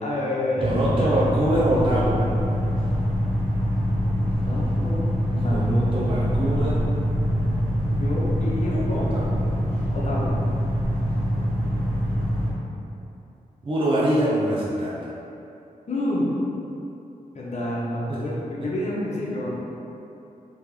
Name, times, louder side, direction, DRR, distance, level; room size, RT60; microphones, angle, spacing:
voice 1, 0.0-1.1 4.4-5.7 6.5-6.7 8.0-9.0 9.9-10.4 15.9-16.3 17.3-19.5, left 1 dB, 50° left, -6 dB, 0.9 m, -29 dB
voice 2, 0.6-2.3 5.5-6.8 8.7-9.4 13.6-14.9 18.1-18.2, right 1 dB, 35° right, -7 dB, 0.6 m, -24 dB
sound 1, 0.6-12.5, equal, 75° right, 1.0 m, -24 dB
3.4 x 3.0 x 3.1 m, 2.8 s
cardioid pair, 65°, 15 cm